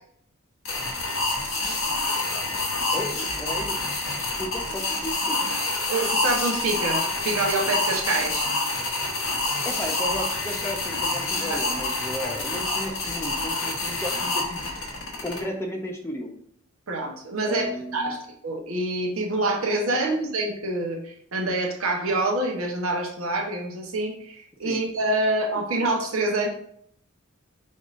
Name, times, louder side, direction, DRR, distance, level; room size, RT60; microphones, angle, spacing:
sound 1, 0.7-15.4, left 2 dB, 65° left, 1.1 m, -27 dB
voice 1, 2.9-3.8 4.4-5.5 9.6-14.7 15.2-16.3 17.4-18.2 19.9-20.2 24.6-24.8, left 1 dB, 10° left, 2 dB, 0.5 m, -34 dB
voice 2, 5.9-8.5 11.5-11.6 12.2-12.3 16.9-17.7 17.9-26.5, right 2 dB, 70° right, 1 dB, 0.9 m, -26 dB
5.3 x 3.6 x 2.5 m, 0.67 s
head